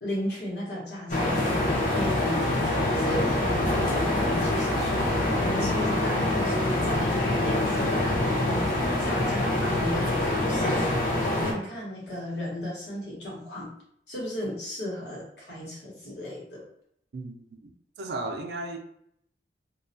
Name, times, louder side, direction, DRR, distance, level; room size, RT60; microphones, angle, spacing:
voice 1, 0.0-8.7 9.0-11.0 11.4-13.7 14.1-16.6, left 1 dB, 80° left, -5 dB, 1.0 m, -35 dB
sound 1, 1.1-11.5, left 1 dB, 45° left, 0.5 m, -25 dB
voice 2, 17.1-17.7 18.0-18.8, right 2 dB, 70° right, 4 dB, 0.4 m, -35 dB
2.3 x 2.1 x 2.6 m, 0.70 s
head